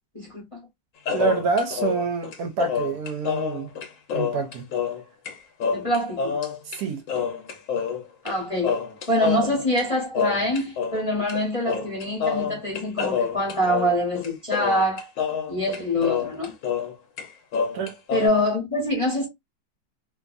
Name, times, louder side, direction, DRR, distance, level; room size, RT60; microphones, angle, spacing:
voice 1, 0.1-0.6 5.7-6.4 8.2-8.8 9.1-15.1 15.5-16.5 18.1-19.3, left 1 dB, 30° left, 0.6 m, -25 dB
sound 1, 1.1-5.0 5.3-5.4 5.6-6.8 7.1-8.4 8.6-11.0 11.3-11.4 11.7-16.9 17.2-18.3, left 6 dB, 65° left, 0.8 m, -27 dB
voice 2, 1.1-3.7 4.1-4.7 6.6-7.0 17.7-18.0, right 5 dB, 70° right, 1.0 m, -27 dB
2.7 x 2.4 x 2.4 m
omnidirectional pair, 1.9 m